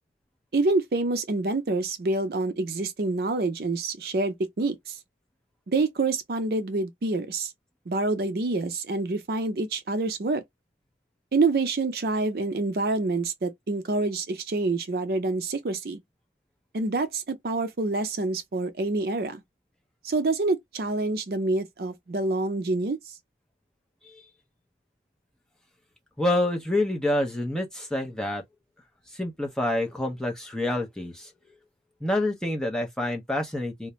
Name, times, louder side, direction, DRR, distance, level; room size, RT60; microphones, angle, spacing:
voice 1, 0.5-5.0 5.7-7.5 7.9-10.4 11.3-16.0 16.7-19.4 20.0-23.0, right 3 dB, 55° right, 0.5 m, -27 dB
voice 2, 26.2-28.4 29.1-31.3 32.0-33.9, left 1 dB, 5° left, 0.5 m, -27 dB
2.4 x 2.1 x 2.9 m
head